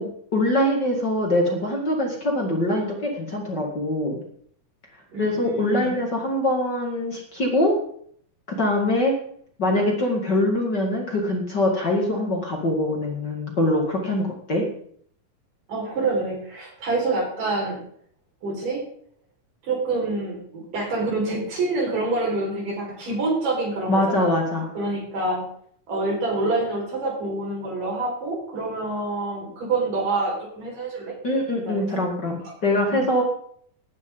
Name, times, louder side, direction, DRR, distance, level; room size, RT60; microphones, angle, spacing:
voice 1, 0.3-4.2 5.2-7.7 8.5-9.1 9.6-14.6 23.9-24.7 31.2-33.2, left 1 dB, 35° left, 0 dB, 2.2 m, -23 dB
voice 2, 5.1-5.9 15.7-17.8 18.4-18.8 19.6-24.3 24.7-25.4 25.9-31.1 31.5-32.0 32.8-33.1, right 3 dB, 75° right, -2 dB, 6.7 m, -27 dB
18.0 x 10.5 x 3.9 m, 0.62 s
omnidirectional pair, 3.8 m